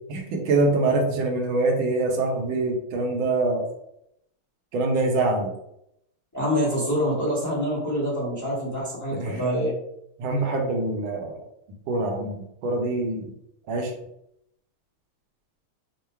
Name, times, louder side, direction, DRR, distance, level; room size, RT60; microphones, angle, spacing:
voice 1, 0.1-3.7 4.7-5.5 9.1-9.4 10.2-11.4 11.9-13.3 13.7-13.9, right 2 dB, 75° right, 2 dB, 1.5 m, -24 dB
voice 2, 6.3-9.7, equal, 20° left, -6 dB, 0.5 m, -26 dB
3.7 x 2.0 x 4.3 m, 0.77 s
omnidirectional pair, 2.4 m